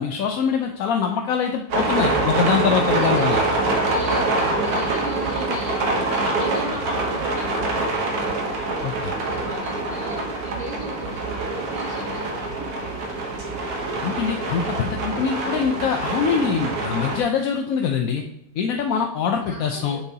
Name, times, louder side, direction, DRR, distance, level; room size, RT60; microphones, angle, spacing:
voice 1, 0.0-3.4 8.8-9.1 14.0-18.2 18.6-20.0, left 6 dB, 70° left, 3 dB, 0.8 m, -23 dB
sound 1, 1.7-17.2, right 2 dB, 60° right, 1.4 m, -25 dB
voice 2, 2.9-7.8 8.6-12.4 19.5-20.0, right 1 dB, 25° left, -6 dB, 2.6 m, -36 dB
6.7 x 6.1 x 2.8 m, 0.83 s
omnidirectional pair, 1.9 m